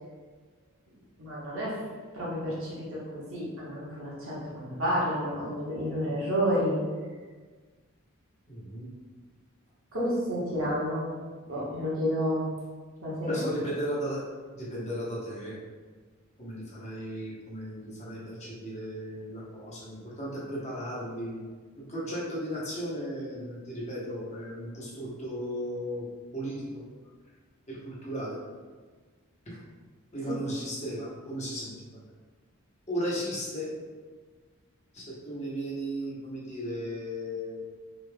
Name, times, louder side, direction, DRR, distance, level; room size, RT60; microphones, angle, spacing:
voice 1, 1.2-1.7 2.1-6.8 9.9-11.1 11.5-12.5 13.0-13.4 30.2-30.3, equal, 70° right, -7 dB, 1.3 m, -30 dB
voice 2, 8.5-8.9 13.3-15.6 16.4-21.4 21.8-26.1 26.3-26.8 27.7-28.4 30.1-31.7 32.9-33.7 34.9-37.6, equal, 30° left, -6 dB, 1.0 m, -35 dB
4.0 x 3.2 x 2.2 m, 1.4 s
head